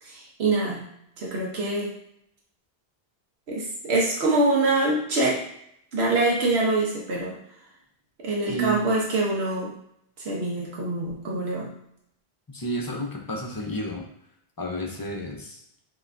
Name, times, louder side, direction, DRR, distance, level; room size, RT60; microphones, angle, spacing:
voice 1, 0.0-0.8 1.2-1.9 3.5-5.4 5.9-7.3 8.2-9.7 10.2-11.7, right 2 dB, 90° right, -3 dB, 1.2 m, -24 dB
voice 2, 8.5-8.8 12.5-14.0 14.6-15.6, right 1 dB, 25° left, 1 dB, 0.6 m, -31 dB
5.5 x 2.9 x 2.5 m, 0.73 s
omnidirectional pair, 1.0 m